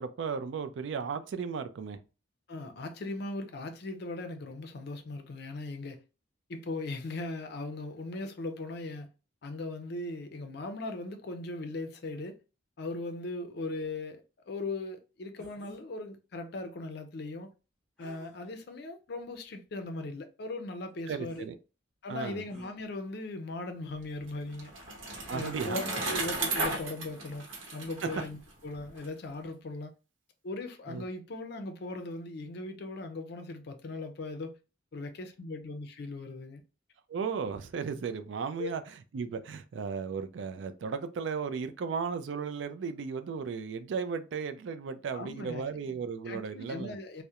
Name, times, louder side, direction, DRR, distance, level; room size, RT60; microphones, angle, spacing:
voice 1, 0.0-2.0 21.1-21.6 22.1-22.4 25.3-25.8 30.9-31.0 37.1-38.8 39.1-47.0, right 5 dB, 70° right, 0.3 m, -35 dB
voice 2, 2.5-6.0 6.5-9.1 9.4-12.4 12.8-17.5 18.0-21.5 22.0-24.7 25.3-27.5 27.7-29.9 30.4-34.6 34.9-36.6 38.6-38.7 45.1-45.6 46.3-47.2, left 2 dB, 55° left, 0.4 m, -39 dB
sound 1, 15.4-15.8 18.0-18.6 19.3-19.4 21.2-21.5 22.5-22.8, equal, 5° left, 0.8 m, -53 dB
Bicycle, 24.0-29.1, right 2 dB, 90° right, 0.8 m, -35 dB
2.8 x 2.1 x 2.3 m
head